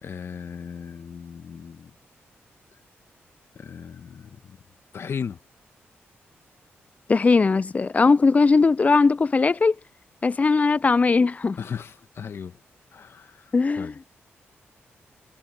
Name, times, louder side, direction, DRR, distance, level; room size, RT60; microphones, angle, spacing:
voice 1, 0.0-1.9 3.5-4.6 4.9-5.4 11.6-12.6 12.9-14.0, left 6 dB, 65° left, 1.6 m, -36 dB
voice 2, 7.1-9.8 10.2-11.6 13.5-13.9, left 4 dB, 30° left, 0.3 m, -19 dB
cardioid pair, 65°, 5 cm